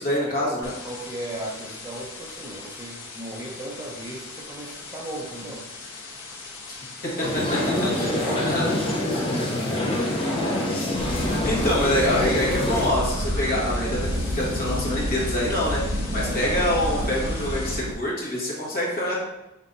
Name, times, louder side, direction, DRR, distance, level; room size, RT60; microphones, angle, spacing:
voice 1, 0.0-0.7 6.7-6.8 7.8-8.1 8.5-8.6 11.4-19.2, left 1 dB, 40° left, -5 dB, 1.4 m, -25 dB
sound 1, 0.6-17.8, left 3 dB, 60° left, 1.0 m, -40 dB
voice 2, 0.8-5.7 8.0-9.0 9.7-10.8 16.1-16.6, right 1 dB, 15° right, -3 dB, 0.6 m, -36 dB
sound 2, 7.2-12.9, left 1 dB, 25° left, 0.9 m, -26 dB
sound 3, 10.9-17.9, equal, 40° right, 1.1 m, -29 dB
5.3 x 3.9 x 2.6 m, 0.97 s
head